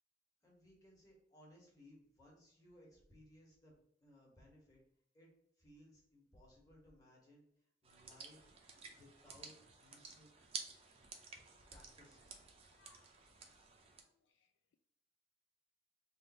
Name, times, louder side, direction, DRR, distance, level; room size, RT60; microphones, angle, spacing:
voice 1, 0.4-4.8 5.1-5.3 5.6-7.4 7.8-8.5 8.9-10.3 11.7-12.4 13.4-13.5, equal, 20° left, -3 dB, 1.4 m, -63 dB
sound 1, 7.8-14.0, right 5 dB, 35° right, 0.5 m, -53 dB
voice 2, 14.0-14.8, left 5 dB, 70° left, 6 dB, 0.3 m, -71 dB
3.5 x 2.5 x 4.1 m, 0.74 s
head